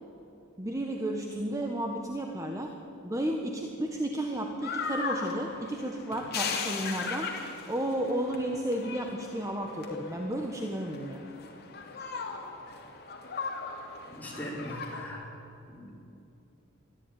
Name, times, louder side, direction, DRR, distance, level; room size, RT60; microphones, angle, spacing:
voice 1, 0.6-2.7 3.0-7.3 7.7-11.3, right 1 dB, 15° right, 2 dB, 1.4 m, -32 dB
sound 1, 4.6-15.0, left 5 dB, 50° left, 2.7 m, -38 dB
voice 2, 14.1-15.3 15.7-15.9, equal, 10° left, -4 dB, 5.3 m, -40 dB
23.0 x 14.5 x 9.4 m, 2.8 s
head